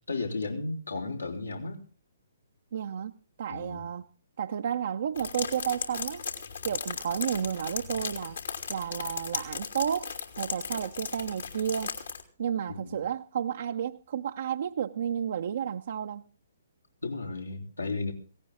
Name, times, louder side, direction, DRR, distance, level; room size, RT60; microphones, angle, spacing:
voice 1, 0.1-1.8 3.5-3.8 12.7-13.0 17.0-18.1, left 3 dB, 80° left, 2 dB, 3.9 m, -34 dB
voice 2, 2.7-3.1 3.4-4.1 4.4-6.2 6.6-8.4 8.7-11.9 12.4-16.2, right 8 dB, 50° right, 4 dB, 0.7 m, -32 dB
sound 1, 5.2-12.2, left 6 dB, 65° left, 2.9 m, -36 dB
17.5 x 17.0 x 3.7 m, 0.38 s
figure-of-eight pair, 125°, 0 cm